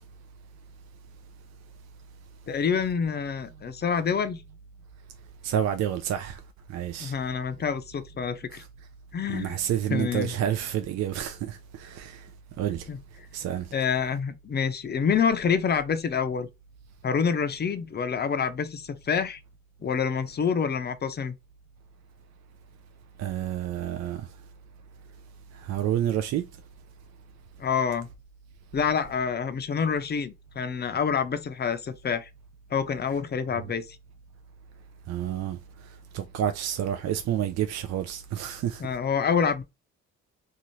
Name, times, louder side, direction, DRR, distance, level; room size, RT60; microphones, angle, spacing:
voice 1, 2.5-4.4 7.0-8.6 9.1-9.6 9.9-10.3 12.9-13.0 13.7-16.5 17.0-19.4 19.8-21.3 27.6-28.1 28.7-32.3 32.7-33.8 38.8-39.6, left 6 dB, 35° left, 0.5 m, -27 dB
voice 2, 5.4-6.4 6.7-7.1 8.5-8.7 9.3-12.3 12.6-12.9 13.3-13.7 23.2-24.3 25.5-26.4 35.1-35.6 36.1-38.8, right 10 dB, 60° right, 0.4 m, -29 dB
2.7 x 2.4 x 3.0 m
cardioid pair, 90°, 30 cm